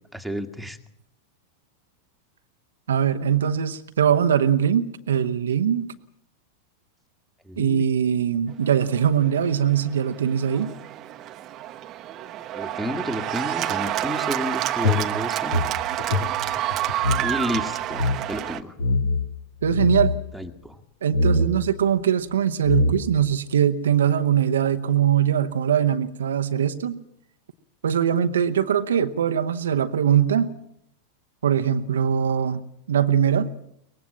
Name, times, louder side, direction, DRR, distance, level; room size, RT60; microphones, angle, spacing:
voice 1, 0.1-0.8 7.5-7.8 12.5-15.6 17.2-18.7 20.3-20.8, equal, ahead, 7 dB, 1.8 m, -31 dB
voice 2, 2.9-5.9 7.6-10.7 19.6-20.1 21.0-27.0 27.8-30.5 31.4-32.6 32.9-33.5, right 8 dB, 65° right, 9 dB, 1.0 m, -21 dB
Cheering / Applause, 8.9-18.6, right 13 dB, 35° right, 1.1 m, -29 dB
sound 1, 14.8-17.3 17.5-17.6 17.9-18.2 18.8-19.3 19.6-20.2 21.1-21.5 22.3-22.4 22.6-23.3, left 2 dB, 60° left, 2.6 m, -23 dB
23.5 x 19.5 x 7.4 m, 0.74 s
figure-of-eight pair, 90°, 0 cm